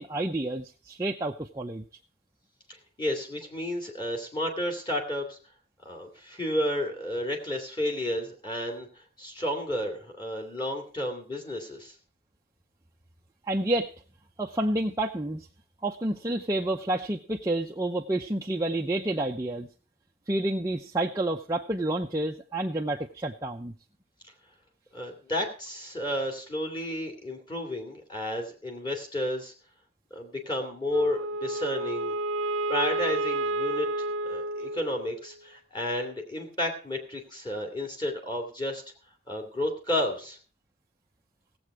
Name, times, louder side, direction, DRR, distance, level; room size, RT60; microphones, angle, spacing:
voice 1, 0.0-1.8 13.5-13.9 14.4-15.5 15.8-19.7 20.3-23.7, right 1 dB, 15° right, 0 dB, 0.6 m, -29 dB
voice 2, 2.7-5.4 5.8-11.9 24.9-29.5 30.1-32.2 32.7-33.9 34.2-38.8 39.3-40.4, left 1 dB, 20° left, 3 dB, 2.3 m, -32 dB
Wind instrument woodwind instrument, 30.9-35.3, right 2 dB, 70° right, 0.5 m, -30 dB
17.0 x 7.8 x 4.8 m, 0.37 s
head